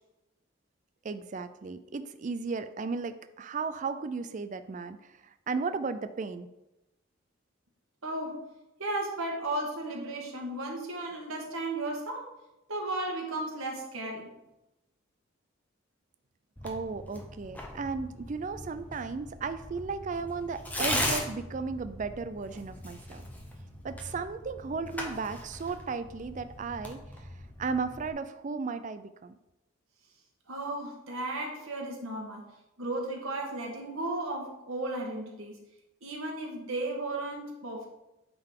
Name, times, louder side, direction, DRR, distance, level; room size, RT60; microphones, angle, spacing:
voice 1, 1.0-6.5 16.6-23.2 23.8-27.3 27.6-29.3, right 4 dB, 35° right, 11 dB, 0.3 m, -35 dB
voice 2, 8.0-8.4 8.8-12.3 12.7-14.3 30.5-32.4 32.8-35.6 36.0-37.9, right 2 dB, 85° right, 0 dB, 1.3 m, -34 dB
Tearing, 16.6-28.1, left 1 dB, 10° left, 0.7 m, -39 dB
8.8 x 3.8 x 3.7 m, 0.95 s
head